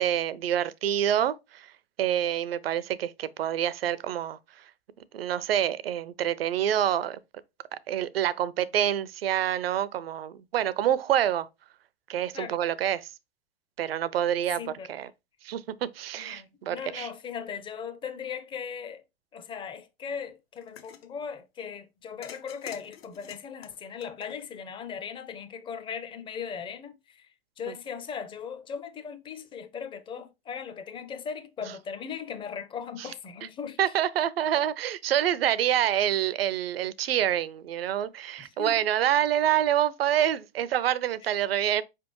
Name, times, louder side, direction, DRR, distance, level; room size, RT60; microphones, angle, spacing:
voice 1, 0.0-1.7 2.0-4.4 5.1-7.2 7.7-11.5 12.1-13.1 13.8-14.6 14.9-15.1 15.4-17.1 33.8-41.8, right 11 dB, 70° right, 0.5 m, -27 dB
voice 2, 14.6-14.9 16.2-19.0 19.3-27.3 27.6-33.8 35.6-35.7 38.4-38.8 41.2-41.3, left 7 dB, 15° left, 0.5 m, -38 dB
sound 1, 20.6-21.1 22.2-24.7, left 8 dB, 75° left, 0.8 m, -48 dB
4.8 x 3.4 x 3.0 m
hypercardioid pair, 100°, 31 cm